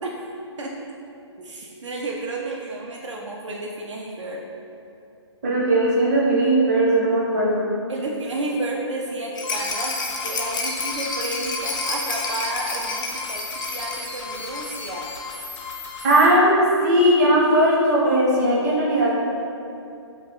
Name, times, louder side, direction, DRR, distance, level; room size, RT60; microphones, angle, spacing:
voice 1, 1.4-4.4 7.9-10.0 10.2-15.1, right 2 dB, 80° right, -2 dB, 0.4 m, -31 dB
voice 2, 5.4-7.7 16.0-19.2, right 1 dB, 35° right, -6 dB, 0.7 m, -18 dB
sound 1, 9.4-16.3, left 4 dB, 75° left, 0.6 m, -35 dB
Rattle, 9.4-15.1 15.3-15.4 15.7-15.8, left 3 dB, 45° left, 0.3 m, -30 dB
2.7 x 2.2 x 3.4 m, 2.6 s
hypercardioid pair, 145°, 15 cm